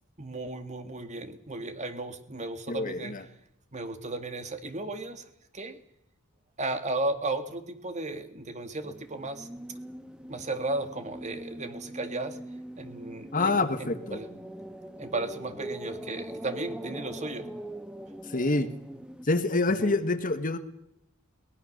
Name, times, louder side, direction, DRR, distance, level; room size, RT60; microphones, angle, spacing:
voice 1, 0.2-3.1 3.7-5.2 5.5-5.8 6.6-9.5 10.3-12.4 12.8-14.3 15.0-17.5 19.8-19.9, right 2 dB, 35° right, 8 dB, 2.1 m, -35 dB
voice 2, 2.7-3.2 13.3-14.2 18.3-18.7 19.2-20.6, left 3 dB, 40° left, 10 dB, 1.6 m, -26 dB
sound 1, 8.8-19.3, right 1 dB, 5° right, 1.3 m, -42 dB
22.5 x 20.0 x 6.7 m, 0.79 s
head